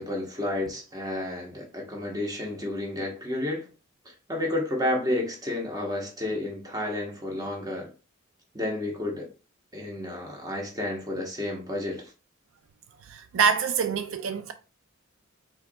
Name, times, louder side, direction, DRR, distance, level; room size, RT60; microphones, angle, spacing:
voice 1, 0.0-3.7 4.3-7.9 8.5-9.3 9.7-12.1, left 1 dB, 20° right, 1.1 m, -31 dB
voice 2, 13.1-14.5, right 6 dB, 70° right, 0.4 m, -25 dB
4.5 x 3.9 x 2.3 m
head